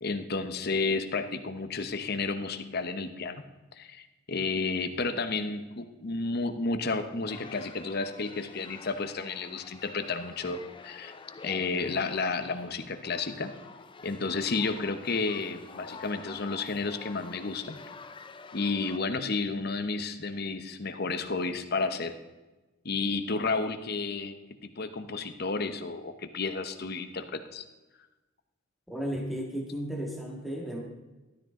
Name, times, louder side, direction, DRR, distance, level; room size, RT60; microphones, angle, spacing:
voice 1, 0.0-3.4 3.8-11.1 11.4-13.5 14.0-17.8 18.5-22.2 22.8-24.3 24.6-27.6, left 3 dB, 50° left, 9 dB, 0.9 m, -31 dB
sound 1, 7.3-19.0, left 4 dB, 25° left, 0.4 m, -48 dB
voice 2, 28.9-30.8, equal, ahead, 0 dB, 1.7 m, -34 dB
13.0 x 12.5 x 3.7 m, 1.1 s
head